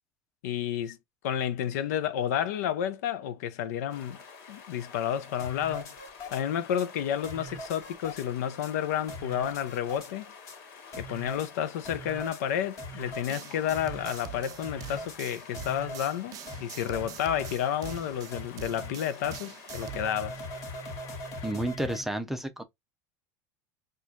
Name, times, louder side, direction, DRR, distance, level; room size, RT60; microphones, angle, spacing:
voice 1, 0.4-1.0 1.2-4.2 4.5-6.0 6.3-10.3 11.0-20.4, left 9 dB, 80° left, 0.6 m, -31 dB
sound 1, 3.9-21.5, left 5 dB, 65° left, 1.4 m, -49 dB
sound 2, 5.4-6.4 6.8-6.9 7.2-8.3 8.6-8.7 9.1-10.1 10.5-10.6 10.9-11.5 11.9-12.4 12.8-13.3 13.7-14.3 14.6-15.2 15.5-16.1 16.5-16.6 16.9-17.1 17.4-17.5 17.9-18.0 18.3-18.4 18.8-18.9 19.2-19.4 19.7-22.0, equal, 40° left, 1.6 m, -41 dB
sound 3, 13.3-20.0, right 11 dB, 45° right, 0.4 m, -44 dB
voice 2, 21.4-22.6, right 1 dB, 5° right, 0.7 m, -31 dB
4.3 x 2.5 x 2.4 m
supercardioid pair, 115°, 9 cm